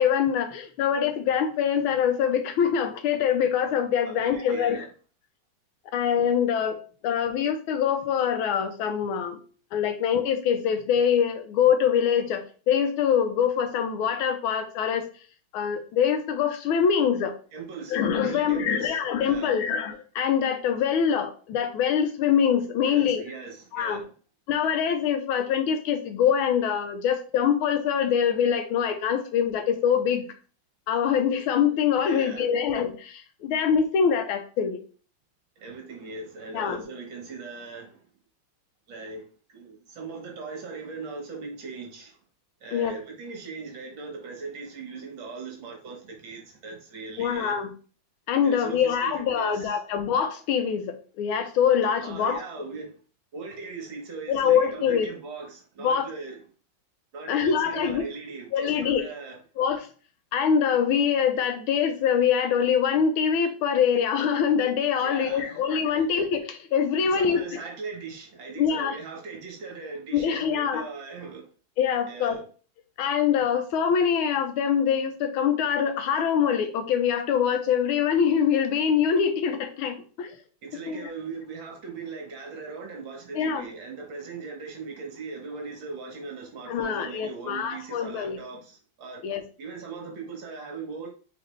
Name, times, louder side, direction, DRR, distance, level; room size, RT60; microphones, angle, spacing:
voice 1, 0.0-4.8 5.9-9.4 9.7-15.1 15.5-17.4 17.9-23.2 23.7-24.0 24.5-30.3 30.9-34.8 36.5-36.8 42.7-42.9 47.2-47.7 48.3-52.4 54.3-55.1 55.8-56.1 57.3-58.0 58.5-59.0 59.6-59.8 60.3-67.6 68.6-69.0 70.1-70.8 71.8-72.4 73.0-80.4 80.9-81.1 83.3-83.7 86.7-88.4 89.2-89.4, left 7 dB, 80° left, 1.5 m, -24 dB
voice 2, 4.1-4.9 17.5-19.6 22.8-24.1 32.1-32.5 35.6-38.0 38.9-42.2 42.6-47.6 48.4-49.8 52.0-53.0 53.3-56.5 57.1-59.4 65.0-65.6 65.9-66.1 67.0-71.5 72.1-72.4 80.6-89.2 89.6-91.1, right 4 dB, 65° right, 1.8 m, -39 dB
4.1 x 3.7 x 3.1 m
omnidirectional pair, 2.3 m